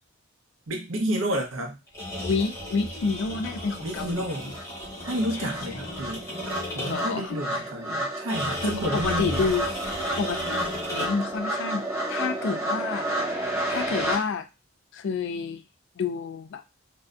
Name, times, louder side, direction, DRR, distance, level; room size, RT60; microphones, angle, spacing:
voice 1, 0.7-1.8 3.8-4.6 5.1-6.3 6.7-9.4, equal, 75° right, 2 dB, 0.7 m, -30 dB
sound 1, 1.9-7.2 8.3-11.4, equal, 15° left, 0.9 m, -35 dB
voice 2, 2.2-4.6 5.3-5.8 6.9-7.6 8.6-9.7 10.2-10.4 10.9-14.5 14.9-15.6 16.0-16.6, left 5 dB, 60° left, 9 dB, 0.3 m, -29 dB
sound 2, 4.1-4.2 4.5-14.2, right 1 dB, 10° right, 0.7 m, -31 dB
2.7 x 2.1 x 2.3 m, 0.26 s
head